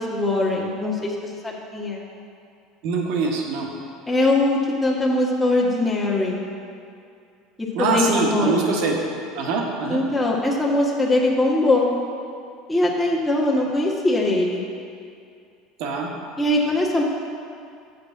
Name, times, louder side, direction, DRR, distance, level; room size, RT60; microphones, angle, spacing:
voice 1, 0.0-2.0 4.1-6.4 7.6-8.7 9.9-11.9 12.7-14.6 16.4-17.0, left 2 dB, 10° left, -5 dB, 1.4 m, -21 dB
voice 2, 2.8-3.7 7.7-9.0 9.3-10.0 15.8-16.1, right 4 dB, 60° right, 0 dB, 1.3 m, -23 dB
6.8 x 5.3 x 7.0 m, 2.4 s
figure-of-eight pair, 70°, 0 cm